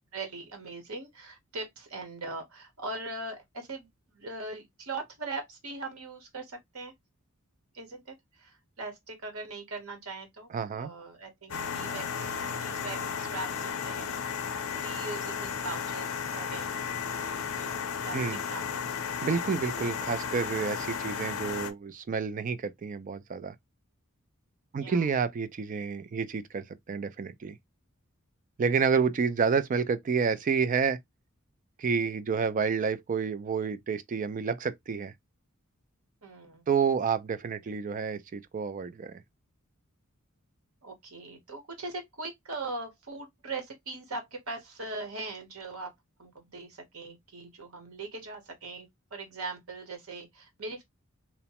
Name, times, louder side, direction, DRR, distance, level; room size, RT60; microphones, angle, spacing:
voice 1, 0.1-3.9 4.1-6.9 7.7-10.5 10.7-14.2 14.7-16.8 17.6-18.8 20.4-20.6 24.7-25.0 28.7-29.0 36.2-36.6 40.8-45.9 46.2-50.8, right 3 dB, 80° right, 1.0 m, -40 dB
voice 2, 10.5-10.9 18.1-18.4 19.2-23.5 24.7-27.6 28.6-31.0 31.8-35.1 36.7-39.2, right 5 dB, 40° right, 0.3 m, -29 dB
sound 1, 11.5-21.7, left 7 dB, 85° left, 0.6 m, -34 dB
2.9 x 2.1 x 2.8 m
head